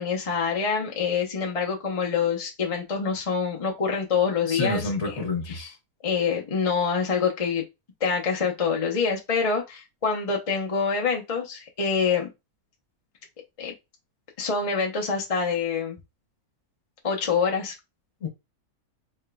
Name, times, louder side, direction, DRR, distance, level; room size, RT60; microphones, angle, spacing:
voice 1, 0.0-5.1 5.5-5.7 6.0-7.6 8.0-12.3 13.6-13.7 14.4-16.0 17.0-17.7, left 5 dB, 30° left, 0.7 m, -26 dB
voice 2, 4.5-5.7 18.2-18.3, left 3 dB, 50° left, 1.4 m, -28 dB
4.2 x 3.6 x 2.2 m
omnidirectional pair, 1.6 m